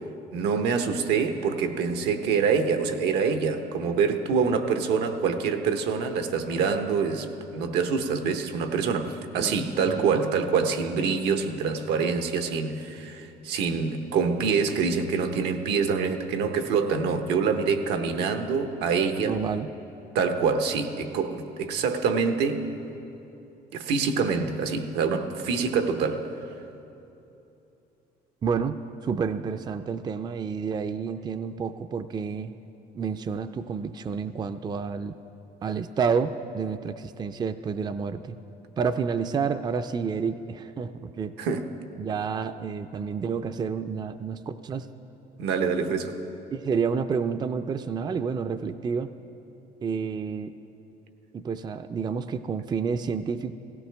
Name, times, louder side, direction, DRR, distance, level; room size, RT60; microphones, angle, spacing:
voice 1, 0.3-19.4 20.1-22.7 23.7-26.3 41.4-41.7 45.4-46.2, right 5 dB, 85° right, 0.9 m, -26 dB
voice 2, 9.4-10.2 19.2-19.7 28.4-28.8 29.0-32.5 32.9-35.1 35.6-38.4 38.8-41.3 42.0-44.9 46.5-49.1 49.8-50.5 51.3-53.5, right 6 dB, 25° right, 0.4 m, -29 dB
17.0 x 16.0 x 3.4 m
cardioid pair, 110°, 17 cm